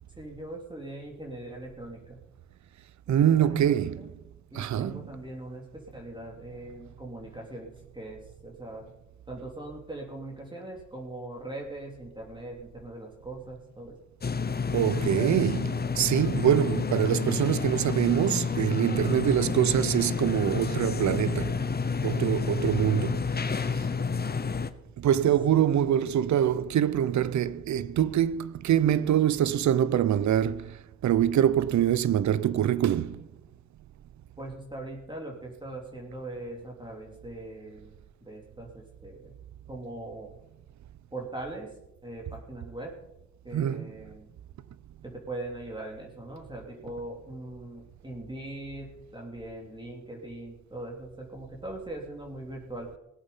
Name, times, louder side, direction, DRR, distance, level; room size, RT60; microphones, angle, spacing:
voice 1, 0.1-2.2 3.1-4.1 4.5-8.9 9.3-14.0 23.4-23.6 25.2-25.3 34.4-39.3 39.7-40.3 41.1-41.7 42.0-42.9 43.4-44.3 45.0-52.9, right 2 dB, 15° right, 3.0 m, -41 dB
voice 2, 3.1-4.1 4.5-5.0 14.7-21.6 22.0-23.6 25.0-33.3 43.5-43.9, right 10 dB, 70° right, 0.7 m, -25 dB
sound 1, 14.2-24.7, left 5 dB, 35° left, 0.9 m, -29 dB
18.0 x 8.0 x 5.5 m
supercardioid pair, 55°, 30 cm